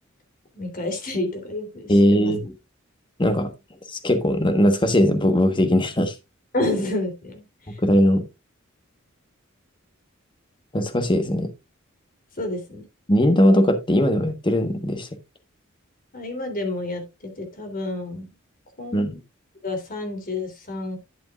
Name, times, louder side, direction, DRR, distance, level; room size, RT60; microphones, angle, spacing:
voice 1, 0.5-2.3 6.5-7.4 12.4-12.8 16.1-18.3 18.8-19.1 19.6-21.0, left 2 dB, 45° left, 3.1 m, -29 dB
voice 2, 1.9-2.5 3.2-3.5 4.0-6.1 7.8-8.3 10.7-11.5 13.1-15.1 18.9-19.2, equal, 25° left, 1.3 m, -19 dB
11.5 x 8.3 x 2.4 m
head